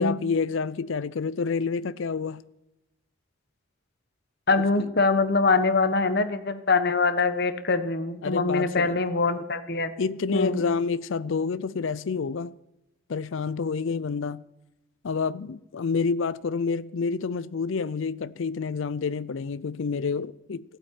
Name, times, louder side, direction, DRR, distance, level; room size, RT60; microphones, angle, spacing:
voice 1, 0.0-2.4 4.8-4.9 8.2-9.0 10.0-12.5 13.1-14.4 15.0-20.6, left 5 dB, 65° left, 0.4 m, -28 dB
voice 2, 4.5-9.9 10.3-10.6, left 3 dB, 50° left, 1.2 m, -23 dB
15.5 x 8.7 x 8.9 m
head